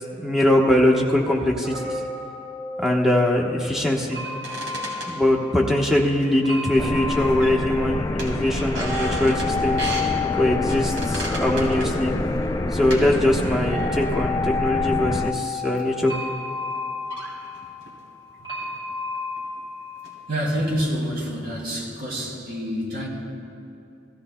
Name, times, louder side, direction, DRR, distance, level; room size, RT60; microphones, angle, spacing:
voice 1, 0.2-1.9 2.8-4.2 5.1-10.1 10.4-12.2 12.7-16.1, left 1 dB, ahead, -1 dB, 1.0 m, -22 dB
sound 1, 1.6-20.3, left 4 dB, 20° right, 3.1 m, -32 dB
sound 2, 4.2-5.7 6.2-6.8 7.0-7.8 8.2-10.1 10.7-13.1 13.4-14.3 14.9-15.1 15.8-15.9 16.7-16.8 17.1-18.0 18.6-18.8 19.1-19.6 20.0-20.4, right 1 dB, 80° right, 2.6 m, -35 dB
sound 3, 6.8-15.3, left 2 dB, 20° left, 0.3 m, -27 dB
voice 2, 20.3-23.1, equal, 50° right, -3 dB, 2.6 m, -27 dB
17.0 x 14.0 x 2.2 m, 2.6 s
head